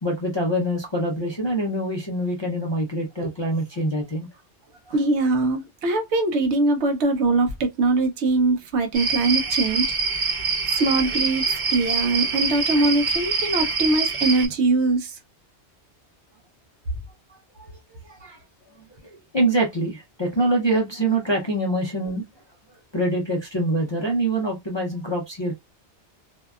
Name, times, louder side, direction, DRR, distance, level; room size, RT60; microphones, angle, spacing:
voice 1, 0.0-4.3 4.9-5.0 17.3-17.7 18.0-18.4 19.3-22.2 22.7-25.5, right 1 dB, 40° left, 0.4 m, -25 dB
voice 2, 4.9-9.9 10.7-11.4 11.7-15.2, right 2 dB, 80° right, 0.9 m, -22 dB
sound 1, 8.9-14.5, right 4 dB, 60° right, 1.0 m, -25 dB
2.6 x 2.2 x 2.3 m
omnidirectional pair, 1.1 m